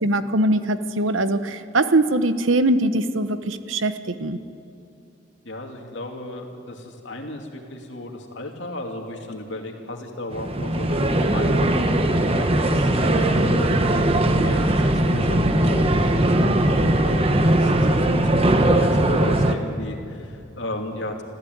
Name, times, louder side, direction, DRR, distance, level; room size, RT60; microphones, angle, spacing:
voice 1, 0.0-4.4, right 1 dB, 85° right, 11 dB, 1.0 m, -22 dB
voice 2, 5.4-21.2, left 1 dB, 65° left, 2 dB, 2.7 m, -34 dB
sound 1, 10.3-19.5, right 1 dB, 30° right, 1.2 m, -19 dB
25.5 x 15.0 x 9.5 m, 2.6 s
head